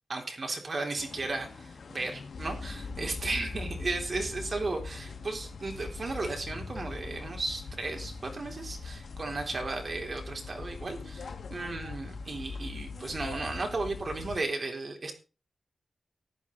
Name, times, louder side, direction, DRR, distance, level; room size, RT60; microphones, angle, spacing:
voice 1, 0.1-15.1, right 3 dB, 45° right, 3 dB, 3.6 m, -35 dB
sound 1, 1.0-14.4, left 4 dB, 75° left, 1.6 m, -41 dB
14.5 x 10.5 x 4.0 m, 0.33 s
wide cardioid pair, 125°, 0 cm